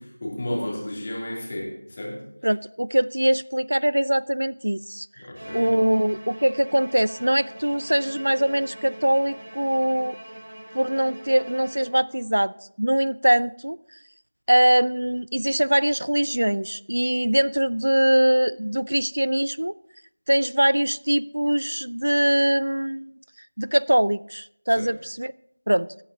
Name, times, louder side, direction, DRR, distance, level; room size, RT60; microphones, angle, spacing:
voice 1, 0.0-2.2 5.2-5.7 24.8-24.9, left 1 dB, 25° left, -3 dB, 2.9 m, -32 dB
voice 2, 2.4-5.1 5.5-10.2 10.7-13.8 14.5-19.8 20.3-23.1 23.6-25.3 25.7-25.9, right 1 dB, 80° right, 21 dB, 0.3 m, -22 dB
Bowed string instrument, 5.3-12.3, right 1 dB, 60° right, 2.6 m, -41 dB
17.0 x 9.4 x 2.8 m, 0.73 s
figure-of-eight pair, 175°, 0 cm